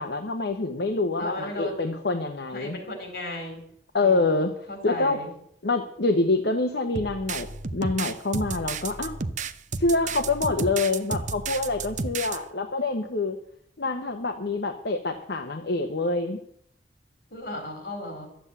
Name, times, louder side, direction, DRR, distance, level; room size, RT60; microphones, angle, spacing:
voice 1, 0.0-2.8 3.9-4.5 4.8-5.2 5.6-9.1 9.8-13.4 13.8-16.4, left 3 dB, 75° left, 4 dB, 1.1 m, -26 dB
voice 2, 1.2-1.8 2.5-3.6 4.0-4.4 4.7-5.3 17.3-18.3, left 1 dB, 60° left, 4 dB, 4.2 m, -35 dB
sound 1, 7.0-12.4, right 4 dB, 45° right, 0.7 m, -32 dB
12.5 x 8.1 x 8.1 m, 0.69 s
head